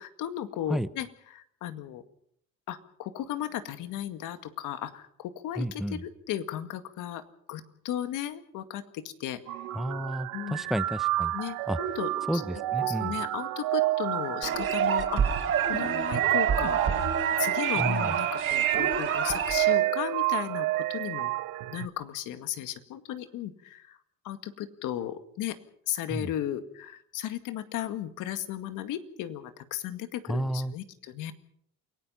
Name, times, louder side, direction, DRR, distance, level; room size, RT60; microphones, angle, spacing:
voice 1, 0.0-2.0 2.7-7.2 7.5-9.6 10.3-10.6 11.3-12.4 12.8-17.1 17.4-21.3 21.7-24.0 24.2-25.6 25.9-31.3, left 11 dB, 75° left, 9 dB, 2.1 m, -35 dB
voice 2, 5.6-6.0 9.7-11.3 11.7-11.8 12.3-13.1 17.8-18.1 26.1-26.3 30.3-30.7, equal, ahead, 15 dB, 0.8 m, -31 dB
sound 1, 9.5-21.9, right 16 dB, 80° right, 1.2 m, -30 dB
sound 2, 14.4-19.8, right 7 dB, 45° right, 4.3 m, -28 dB
28.5 x 18.0 x 5.7 m, 0.67 s
cardioid pair, 115°, 31 cm